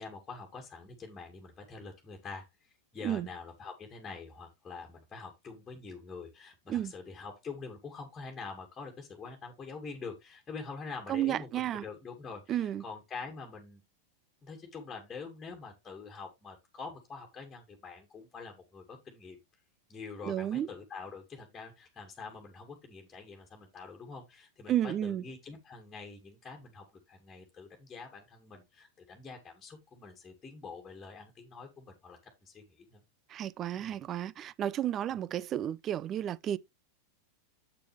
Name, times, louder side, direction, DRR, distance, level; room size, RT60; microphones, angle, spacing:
voice 1, 0.0-13.8 14.4-19.4 19.9-33.0 33.8-33.9, left 4 dB, 15° left, 2.3 m, -45 dB
voice 2, 11.1-11.8 12.5-12.8 20.2-20.7 24.7-25.2 33.3-36.6, right 11 dB, 30° right, 0.5 m, -32 dB
8.1 x 6.8 x 3.4 m
figure-of-eight pair, 90°, 0 cm